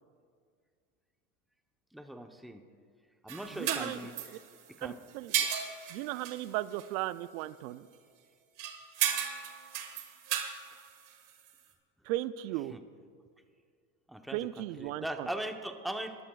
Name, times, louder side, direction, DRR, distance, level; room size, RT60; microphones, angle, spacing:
voice 1, 1.9-2.6 3.2-4.1 4.8-5.0 12.7-12.8 14.1-14.4 14.8-16.2, right 1 dB, ahead, 5 dB, 0.8 m, -39 dB
sound 1, 3.3-4.8 5.1-6.5 6.7-6.9 8.6-11.5, right 9 dB, 50° right, 1.7 m, -35 dB
voice 2, 3.5-4.4 4.8-5.5 5.9-7.9 12.1-12.8 14.3-15.3, right 15 dB, 75° right, 15 dB, 0.5 m, -36 dB
25.0 x 12.0 x 2.3 m, 2.1 s
supercardioid pair, 100°, 41 cm